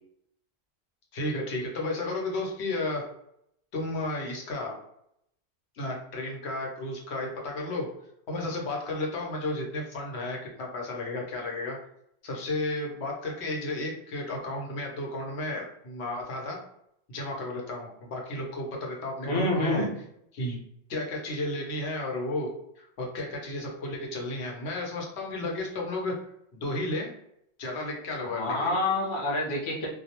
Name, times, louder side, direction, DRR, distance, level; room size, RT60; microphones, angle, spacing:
voice 1, 1.1-3.1 3.7-4.8 5.7-7.9 8.3-11.8 12.2-16.6 17.1-19.9 20.3-20.6 20.9-22.5 22.8-26.1 26.5-27.1 27.6-28.5, left 2 dB, 80° left, -1 dB, 1.0 m, -33 dB
voice 2, 19.3-20.0 28.2-29.9, left 2 dB, 35° left, -2 dB, 0.5 m, -27 dB
2.3 x 2.0 x 2.8 m, 0.74 s
omnidirectional pair, 1.1 m